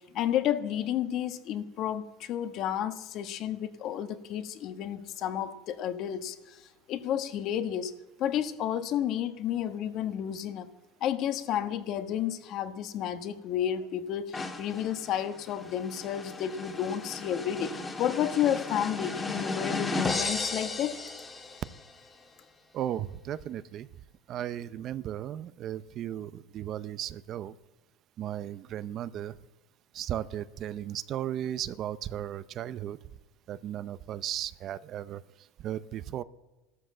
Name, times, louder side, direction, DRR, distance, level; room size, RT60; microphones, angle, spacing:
voice 1, 0.1-6.6 6.9-7.9 8.2-10.7 11.0-21.0, left 10 dB, 50° left, 10 dB, 1.2 m, -31 dB
sound 1, 14.3-21.9, left 3 dB, 15° left, 1.6 m, -35 dB
voice 2, 22.7-23.9 24.3-27.5 28.2-29.4 29.9-33.0 33.5-35.2 35.6-36.2, right 11 dB, 40° right, 16 dB, 0.6 m, -35 dB
14.5 x 13.0 x 7.6 m, 1.1 s
cardioid pair, 140°, 0 cm